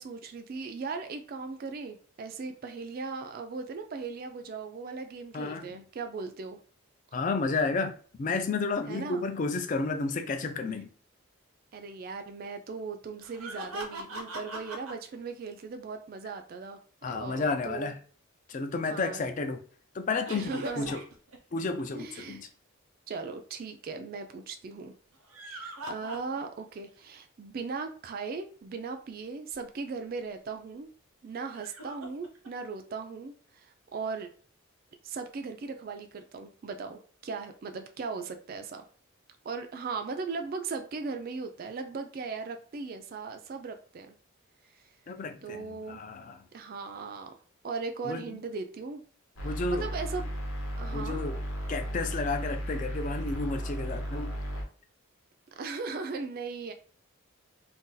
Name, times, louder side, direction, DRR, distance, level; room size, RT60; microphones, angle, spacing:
voice 1, 0.0-6.6 8.9-9.2 11.7-16.8 17.1-17.9 18.9-19.2 20.3-20.9 21.9-22.4 23.1-24.9 25.5-30.9 31.2-34.3 35.0-38.8 39.4-44.1 45.4-46.0 46.5-47.4 47.6-49.0 49.7-50.3 50.8-51.2 55.6-56.7, right 4 dB, 45° right, 0.3 m, -38 dB
voice 2, 5.3-5.8 7.1-10.9 17.0-18.0 18.5-19.6 19.9-21.0 21.5-22.5 45.1-46.4 48.0-48.4 49.4-49.9 50.9-51.4 51.7-54.3, left 3 dB, 35° left, 0.4 m, -32 dB
sound 1, 13.2-14.9 20.3-22.3 25.1-26.7 27.1-27.2 29.5-29.6 31.4-32.5, right 1 dB, 90° right, 0.8 m, -41 dB
sound 2, 49.4-54.6, equal, 80° left, 0.9 m, -35 dB
2.6 x 2.3 x 3.8 m
head